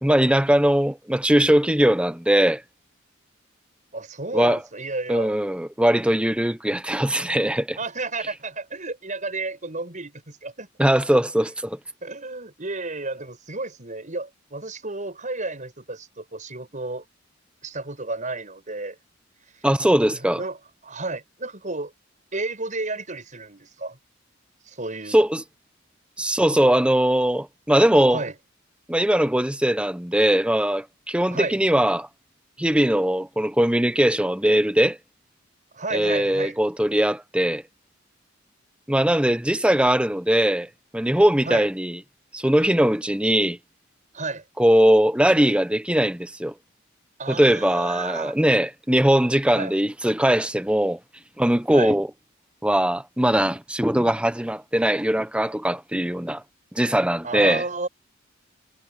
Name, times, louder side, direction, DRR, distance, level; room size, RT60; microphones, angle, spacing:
voice 1, 0.0-2.6 4.3-4.6 5.1-7.8 10.8-11.8 19.6-20.4 25.1-25.4 26.2-28.2 28.9-32.1 32.6-35.0 35.9-37.6 38.9-40.7 40.9-42.0 42.3-43.6 44.6-46.5 47.3-51.0 51.4-52.1 52.6-56.4 56.7-57.6, right 1 dB, 5° right, 0.9 m, -20 dB
voice 2, 3.9-5.4 7.8-10.7 12.0-17.0 17.6-19.0 20.3-20.6 20.8-21.9 22.3-24.0 24.6-25.2 28.1-28.3 31.3-31.6 35.7-36.6 41.4-41.7 44.1-44.4 47.2-48.3 49.5-49.7 51.7-52.0 57.2-57.9, right 3 dB, 40° right, 8.0 m, -32 dB
head